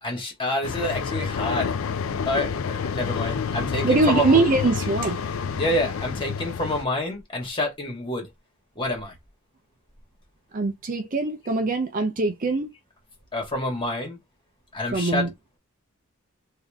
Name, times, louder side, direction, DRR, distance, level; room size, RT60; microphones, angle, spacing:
voice 1, 0.0-1.7 2.3-4.4 5.6-8.3 8.8-9.2 13.3-14.2 14.7-15.3, left 1 dB, 25° left, 1.8 m, -28 dB
sound 1, 0.6-6.8, left 6 dB, 65° left, 0.4 m, -29 dB
voice 2, 3.8-5.2 10.5-12.7 14.9-15.3, right 3 dB, 40° right, 0.6 m, -22 dB
3.6 x 2.8 x 3.5 m
head